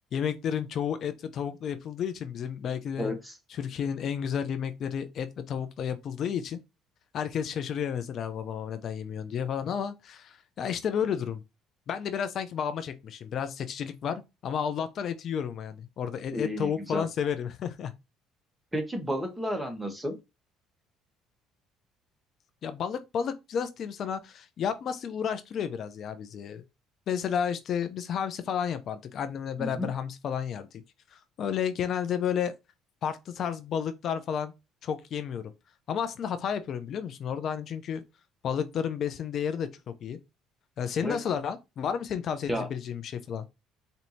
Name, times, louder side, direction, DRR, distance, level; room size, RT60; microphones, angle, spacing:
voice 1, 0.1-3.1 3.5-6.6 7.1-11.4 11.9-17.9 22.6-26.6 27.1-30.8 31.1-32.5 33.0-34.5 34.8-35.4 35.9-38.0 38.4-39.7 40.0-40.2 40.8-43.4, left 8 dB, 55° left, 0.4 m, -32 dB
voice 2, 3.0-3.4 16.3-17.0 18.7-20.1 29.6-29.9 41.0-41.2 42.5-42.7, equal, 10° right, 1.1 m, -32 dB
4.4 x 2.7 x 2.6 m
supercardioid pair, 90°, 0 cm